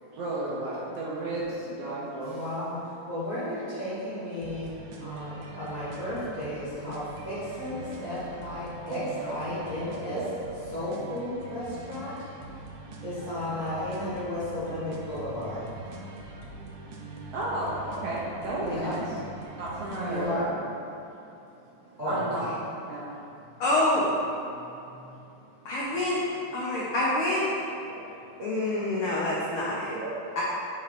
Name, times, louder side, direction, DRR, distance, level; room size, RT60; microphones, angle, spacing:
voice 1, 0.0-2.4 7.8-8.3 8.9-9.4 10.1-10.6 12.5-13.0 15.9-19.0 19.5-20.6 21.0-22.5 22.8-23.6 24.5-25.7 27.9-28.8 29.8-30.4, right 2 dB, 70° right, -6 dB, 1.6 m, -35 dB
voice 2, 2.3-4.7 5.0-9.0 9.3-10.2 10.7-12.1 13.0-15.6 18.5-18.9 19.3-19.4 20.1-20.5 22.0-22.5, left 1 dB, 35° right, -11 dB, 0.6 m, -33 dB
sound 1, 4.4-20.4, right 2 dB, 90° right, 1.3 m, -43 dB
voice 3, 23.6-24.1 25.6-26.2 26.5-27.5 28.4-29.9 30.4-30.5, left 1 dB, 85° left, -6 dB, 1.2 m, -26 dB
7.5 x 3.2 x 4.0 m, 2.7 s
omnidirectional pair, 3.3 m